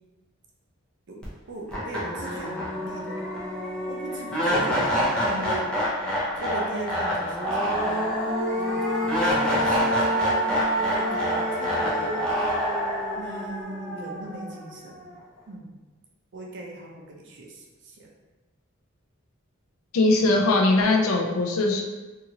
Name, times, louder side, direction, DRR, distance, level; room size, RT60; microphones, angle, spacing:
voice 1, 1.1-3.4 3.9-5.8 6.4-8.2 8.5-10.2 10.9-12.3 13.2-15.1 15.5-15.8 16.3-18.1, right 2 dB, 60° right, -1 dB, 0.6 m, -39 dB
sound 1, 1.2-1.3 1.7-14.8, equal, 5° left, 0.6 m, -26 dB
voice 2, 19.9-21.9, left 2 dB, 75° left, 1 dB, 0.4 m, -21 dB
2.7 x 2.4 x 2.8 m, 1.2 s
head